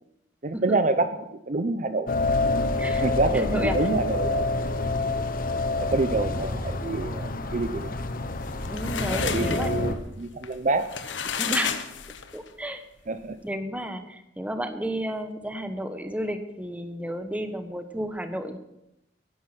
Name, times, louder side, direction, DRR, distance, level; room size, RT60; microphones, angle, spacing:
voice 1, 0.4-1.1 1.5-2.1 2.9-4.5 5.1-5.2 5.8-8.0 9.1-10.9 13.1-13.4, right 2 dB, 45° right, 10 dB, 0.7 m, -27 dB
sound 1, 2.1-10.0, left 2 dB, 50° left, 1.1 m, -27 dB
voice 2, 2.8-3.9 8.7-9.9 11.3-11.9 12.3-12.8 13.4-18.6, right 1 dB, 10° right, 8 dB, 1.2 m, -32 dB
sound 2, 8.3-12.5, left 7 dB, 90° left, 1.1 m, -32 dB
16.0 x 10.5 x 6.0 m, 0.86 s
head